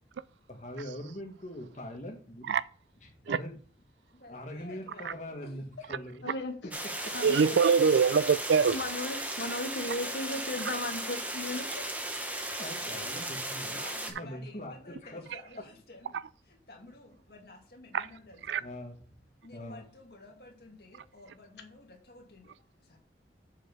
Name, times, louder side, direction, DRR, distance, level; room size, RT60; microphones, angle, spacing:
voice 1, 0.5-2.5 3.2-3.5 4.3-6.3 6.6-7.2 12.3-13.8 14.2-15.2 18.0-18.1 18.6-19.0 19.5-19.8, left 1 dB, 40° left, 1.9 m, -42 dB
voice 2, 4.1-5.6 9.5-11.2 12.0-16.2 16.4-18.7 19.4-23.0, left 2 dB, 60° left, 2.3 m, -53 dB
voice 3, 6.2-6.5 7.1-7.4 8.7-11.7, left 2 dB, 80° left, 1.1 m, -35 dB
sound 1, 6.7-14.1, right 1 dB, 10° right, 0.9 m, -36 dB
voice 4, 7.2-8.8 17.9-18.1 18.5-18.6, right 6 dB, 80° right, 0.4 m, -23 dB
7.4 x 5.5 x 5.4 m
head